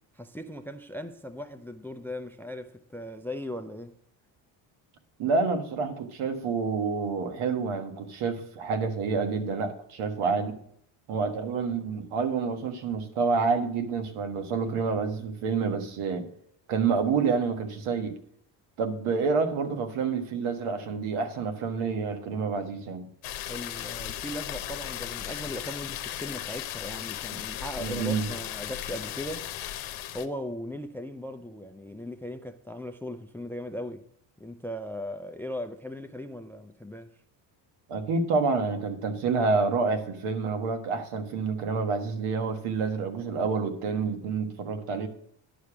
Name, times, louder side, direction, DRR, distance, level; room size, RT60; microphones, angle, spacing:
voice 1, 0.1-3.9 23.5-29.5 30.1-34.0 34.4-37.1, left 1 dB, 5° left, 0.4 m, -38 dB
voice 2, 5.2-10.5 11.1-16.3 16.7-18.1 18.8-23.1 27.8-28.2 37.9-45.1, right 4 dB, 80° right, 1.6 m, -28 dB
sound 1, 23.2-30.3, left 12 dB, 75° left, 0.9 m, -36 dB
11.0 x 5.0 x 6.0 m
cardioid pair, 110°, 49 cm